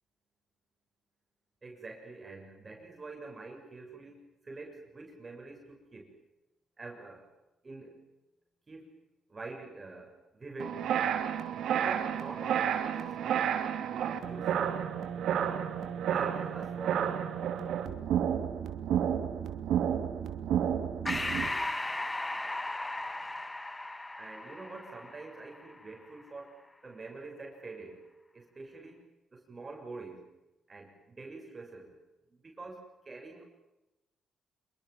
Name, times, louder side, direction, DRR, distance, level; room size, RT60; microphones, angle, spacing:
voice 1, 1.6-6.1 6.8-7.3 7.6-8.1 8.7-9.0 9.3-10.9 11.5-13.5 13.8-14.9 15.4-15.8 16.0-17.3 24.2-28.1 28.3-29.0 29.3-30.3 30.7-32.0 32.3-33.5, right 3 dB, 30° right, 1 dB, 7.0 m, -46 dB
sound 1, 10.6-21.5, right 9 dB, 75° right, 2.8 m, -31 dB
Breathing, 21.1-25.9, left 2 dB, 15° left, 1.1 m, -36 dB
27.5 x 23.0 x 7.4 m, 0.97 s
cardioid pair, 90°, 0 cm